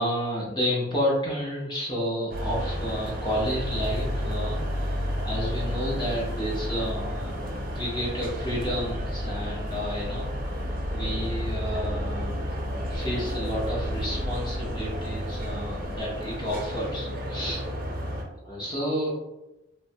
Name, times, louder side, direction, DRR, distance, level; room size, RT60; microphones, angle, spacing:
voice 1, 0.0-10.3 10.9-12.4 12.9-17.6 18.4-19.1, equal, 20° left, -5 dB, 0.6 m, -31 dB
sound 1, 2.3-18.2, equal, 45° right, 0.5 m, -31 dB
sound 2, 2.9-9.0, right 1 dB, 80° left, 0.9 m, -45 dB
3.0 x 2.1 x 2.7 m, 0.96 s
head